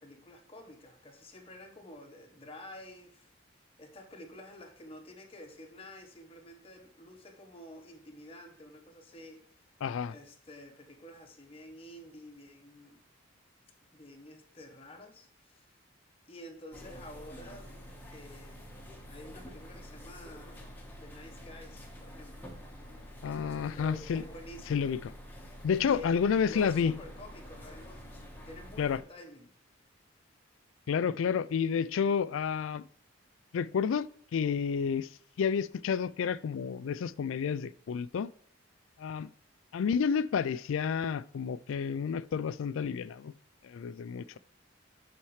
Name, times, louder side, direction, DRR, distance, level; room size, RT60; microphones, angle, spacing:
voice 1, 0.0-3.3 3.8-9.4 10.1-13.0 13.9-15.7 16.3-17.8 18.1-18.7 19.1-20.7 21.0-22.5 23.2-24.9 25.8-29.5 44.3-44.4, left 1 dB, 30° left, 1.1 m, -50 dB
voice 2, 9.8-10.1 23.2-24.2 24.7-25.1 25.6-26.9 28.8-29.0 30.9-32.8 33.5-38.3 39.0-39.3 39.7-43.3 43.6-44.4, left 6 dB, 70° left, 0.3 m, -30 dB
sound 1, 16.7-29.0, equal, 10° left, 1.3 m, -48 dB
11.0 x 4.4 x 3.2 m
head